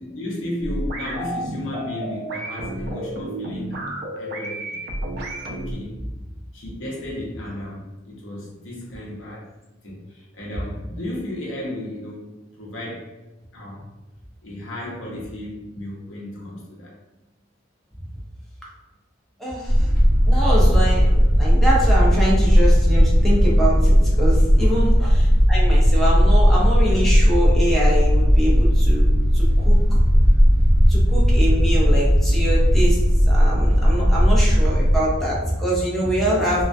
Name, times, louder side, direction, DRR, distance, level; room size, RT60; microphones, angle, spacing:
voice 1, 0.0-3.9 4.2-4.8 5.5-6.0 6.5-9.5 9.8-13.1 13.5-13.9 14.4-16.9 19.4-19.6 24.6-24.7, left 1 dB, 85° left, -4 dB, 0.7 m, -34 dB
sound 1, 0.6-5.7, right 1 dB, 55° right, 0.4 m, -31 dB
voice 2, 19.4-19.9 20.3-29.1 29.3-30.1 30.7-33.0 33.3-36.6, equal, ahead, -6 dB, 0.6 m, -24 dB
sound 2, 19.7-35.0, equal, 45° left, 0.9 m, -16 dB
2.3 x 2.2 x 2.5 m, 1.1 s
head